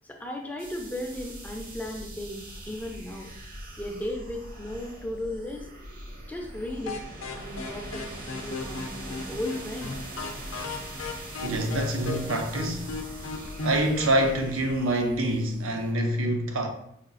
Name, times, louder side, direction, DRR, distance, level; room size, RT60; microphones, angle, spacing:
voice 1, 0.1-3.3 3.8-5.7 6.3-7.0 7.3-10.0, left 1 dB, 10° left, 0.4 m, -36 dB
sound 1, 0.6-15.9, right 1 dB, 45° right, 0.7 m, -42 dB
sound 2, 6.9-14.4, left 3 dB, 85° left, 0.5 m, -36 dB
voice 2, 11.4-12.9 13.6-16.7, right 1 dB, 85° right, 0.6 m, -26 dB
4.9 x 2.4 x 2.5 m
head